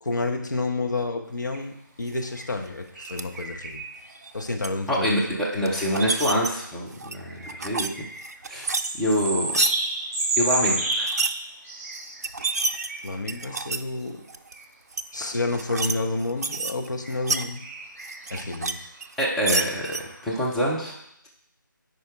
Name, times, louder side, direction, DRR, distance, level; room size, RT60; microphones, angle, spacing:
voice 1, 0.0-3.8 4.3-5.2 5.5-5.7 12.4-12.5 13.0-14.2 15.1-17.6 18.3-18.7, left 2 dB, 60° left, 3 dB, 1.1 m, -30 dB
sound 1, 1.5-1.6 2.4-4.1 4.6-4.7 7.1-13.5 14.5-14.6 15.1-15.2 17.0-20.5, right 2 dB, 30° right, 1.6 m, -32 dB
sound 2, 3.0-3.2 4.1-4.7 5.7-6.5 6.9-7.9 8.2-9.7 10.9-11.3 11.9-12.0 12.2-13.8 14.3-14.5 14.9-15.0 15.5-15.9 16.2-17.4 18.0-18.7 19.0-20.0, right 3 dB, 50° right, 0.5 m, -28 dB
voice 2, 4.9-8.1 8.5-8.7 9.0-9.6 10.4-11.1 19.2-21.0, equal, ahead, -5 dB, 0.5 m, -26 dB
9.5 x 4.8 x 3.5 m, 0.78 s
figure-of-eight pair, 155°, 11 cm